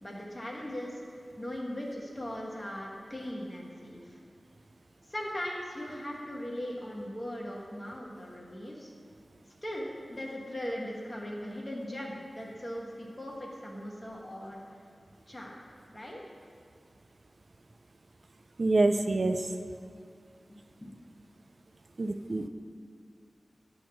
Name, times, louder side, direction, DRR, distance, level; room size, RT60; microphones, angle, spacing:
voice 1, 0.0-4.2 5.1-8.9 9.6-14.6 15.3-16.2 20.5-20.6, equal, 25° left, -3 dB, 1.2 m, -39 dB
voice 2, 18.6-19.5 22.0-22.5, right 2 dB, 60° right, 7 dB, 0.3 m, -26 dB
8.8 x 3.1 x 6.1 m, 2.3 s
wide cardioid pair, 60°, 0 cm